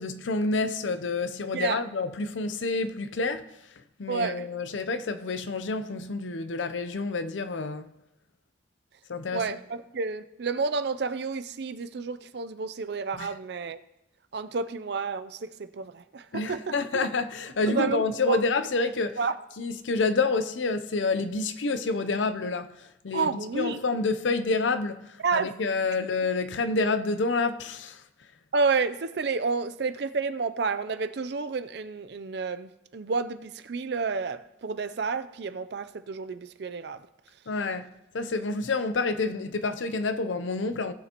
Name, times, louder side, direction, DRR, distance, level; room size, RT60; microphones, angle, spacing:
voice 1, 0.0-3.5 4.0-7.9 9.1-9.6 13.2-13.3 16.3-19.2 19.6-23.3 23.5-28.0 37.5-37.9 38.1-40.9, left 3 dB, 90° left, 0.6 m, -28 dB
voice 2, 4.1-4.5 9.3-13.8 14.3-17.1 17.7-18.4 19.2-19.4 23.1-23.8 25.2-25.5 28.5-37.1, right 4 dB, 65° right, 0.5 m, -30 dB
18.0 x 6.8 x 3.0 m
head